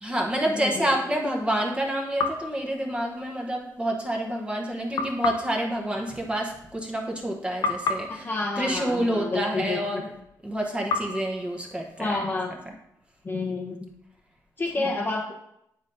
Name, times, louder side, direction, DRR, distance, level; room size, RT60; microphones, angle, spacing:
voice 1, 0.0-8.3 8.6-10.1 10.4-12.1 14.8-14.9, right 1 dB, 15° right, 0 dB, 1.0 m, -28 dB
voice 2, 0.5-1.0 8.1-10.0 12.0-12.5 13.2-13.9 14.6-15.3, left 3 dB, 25° left, -3 dB, 0.8 m, -29 dB
sound 1, 2.2-3.6 5.0-7.3 7.6-9.9 10.9-12.8, left 4 dB, 65° left, 0.7 m, -34 dB
9.5 x 4.1 x 2.6 m, 0.78 s
cardioid pair, 105°, 7 cm